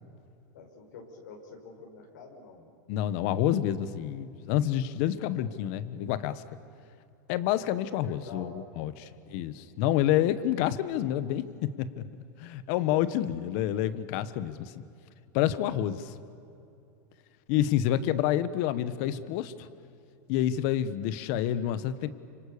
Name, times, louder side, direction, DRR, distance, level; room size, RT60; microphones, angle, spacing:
voice 1, 0.5-2.7 7.7-9.3 9.7-10.2 12.8-13.2, left 3 dB, 90° left, 1 dB, 5.6 m, -49 dB
voice 2, 2.9-6.4 7.3-12.0 12.4-14.8 15.3-16.1 17.5-19.7 20.3-22.1, left 11 dB, 55° left, 14 dB, 1.3 m, -28 dB
30.0 x 26.5 x 6.9 m, 2.6 s
supercardioid pair, 145°, 10 cm